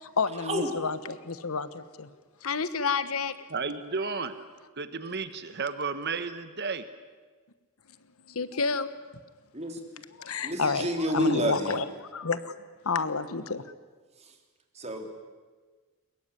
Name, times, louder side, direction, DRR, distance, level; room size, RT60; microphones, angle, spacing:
voice 1, 0.0-2.1 2.4-3.3 8.3-8.9 10.2-12.5 12.8-13.6, left 4 dB, 75° left, 13 dB, 1.2 m, -30 dB
voice 2, 3.5-4.4 4.8-6.9, right 4 dB, 50° right, 11 dB, 1.2 m, -33 dB
voice 3, 10.4-11.8 14.8-15.1, equal, 30° right, 4 dB, 3.2 m, -28 dB
22.5 x 21.5 x 9.9 m, 1.4 s
head